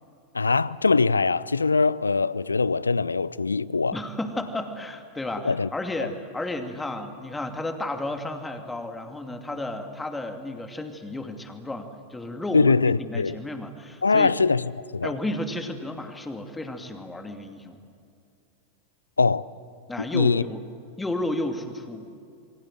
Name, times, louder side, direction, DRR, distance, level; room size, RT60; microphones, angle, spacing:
voice 1, 0.3-4.0 5.4-5.7 6.0-6.1 12.5-13.4 14.0-15.1 19.2-19.4 20.1-20.4, left 4 dB, 75° left, 0.6 m, -22 dB
voice 2, 3.9-14.3 15.0-17.8 19.9-20.6 21.0-22.1, left 1 dB, 10° left, 2.7 m, -32 dB
28.5 x 24.0 x 7.8 m
figure-of-eight pair, 90°, 0 cm